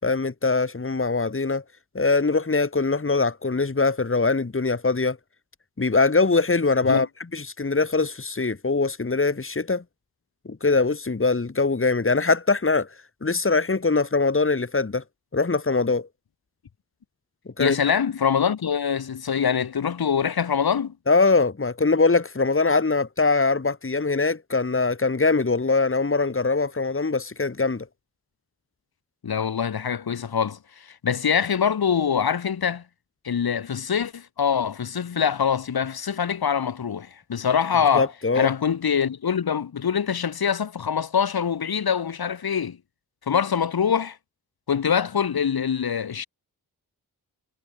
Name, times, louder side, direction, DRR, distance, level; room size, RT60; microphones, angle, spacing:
voice 1, 0.0-1.6 1.9-5.2 5.8-7.1 7.3-9.8 10.5-12.9 13.2-15.0 15.3-16.1 17.6-17.8 21.1-27.9 37.9-38.5, left 3 dB, 35° left, 4.0 m, -22 dB
voice 2, 17.6-20.9 29.2-30.6 30.9-32.8 33.2-38.1 38.3-42.8 43.3-44.2 44.7-46.3, left 7 dB, 80° left, 6.6 m, -24 dB
cardioid pair, 60°, 37 cm